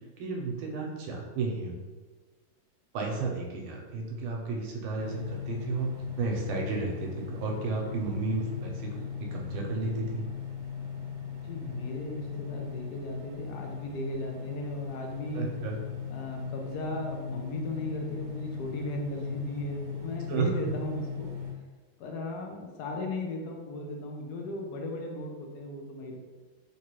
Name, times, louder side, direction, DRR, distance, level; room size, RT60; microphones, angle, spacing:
voice 1, 0.2-1.8 2.9-10.3 15.3-15.8 20.3-20.7, right 3 dB, 80° right, 0 dB, 1.4 m, -33 dB
sound 1, 5.0-21.5, left 7 dB, 55° right, 1.0 m, -38 dB
voice 2, 11.4-15.5 16.1-21.3 22.0-26.2, left 1 dB, 70° left, 2 dB, 0.9 m, -36 dB
3.5 x 3.0 x 2.9 m, 1.3 s
omnidirectional pair, 2.2 m